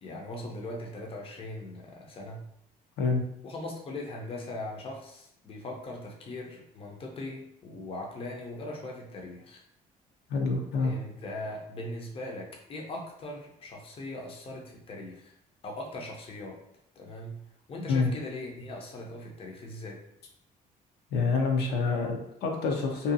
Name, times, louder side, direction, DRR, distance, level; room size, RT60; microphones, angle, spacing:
voice 1, 0.0-2.5 3.4-9.6 10.8-15.3 15.6-16.6 17.0-17.4 17.7-20.0, left 1 dB, 35° left, 0 dB, 0.6 m, -40 dB
voice 2, 10.3-10.9 17.9-18.1 21.1-23.1, left 4 dB, 80° left, 1 dB, 0.6 m, -27 dB
2.6 x 2.3 x 2.6 m, 0.76 s
cardioid pair, 110°, 17 cm